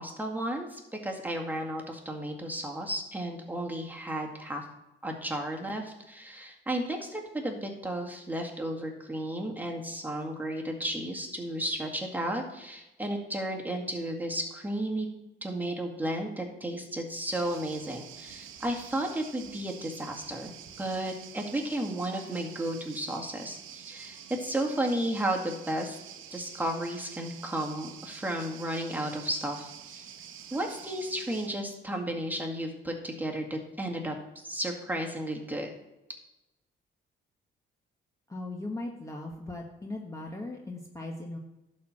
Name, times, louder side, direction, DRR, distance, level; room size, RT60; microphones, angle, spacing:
voice 1, 0.0-4.6 5.0-15.1 15.4-20.5 20.8-26.0 26.3-30.1 30.5-34.1 34.4-35.7, right 1 dB, 10° right, 1 dB, 2.0 m, -33 dB
sound 1, 17.3-31.5, right 9 dB, 85° right, 1.0 m, -47 dB
voice 2, 38.3-41.4, left 2 dB, 15° left, 0 dB, 1.3 m, -38 dB
11.5 x 4.4 x 7.4 m, 0.98 s
cardioid pair, 90°, 20 cm